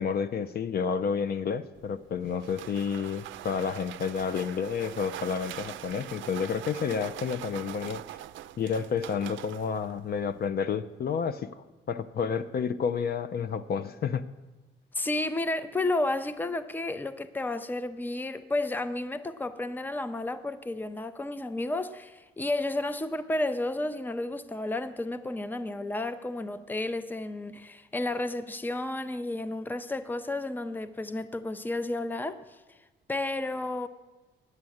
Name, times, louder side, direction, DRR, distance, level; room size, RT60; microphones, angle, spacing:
voice 1, 0.0-8.0 8.6-11.5 11.9-14.2, left 6 dB, 50° left, 0.5 m, -30 dB
sound 1, 1.7-10.5, right 13 dB, 75° right, 0.4 m, -43 dB
voice 2, 14.9-32.4 33.1-33.9, left 2 dB, 10° left, 0.6 m, -32 dB
9.7 x 7.2 x 7.8 m
cardioid pair, 90°, 20 cm